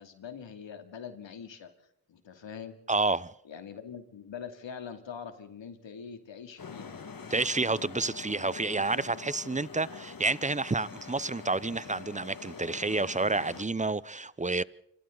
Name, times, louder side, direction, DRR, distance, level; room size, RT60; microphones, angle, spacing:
voice 1, 0.0-2.8 3.4-7.0, left 7 dB, 75° left, 2.8 m, -43 dB
voice 2, 2.9-3.3 7.3-14.6, right 3 dB, 15° right, 0.7 m, -29 dB
sound 1, 6.6-13.6, left 5 dB, 45° left, 2.0 m, -45 dB
28.5 x 26.5 x 4.0 m
cardioid pair, 50°, 45 cm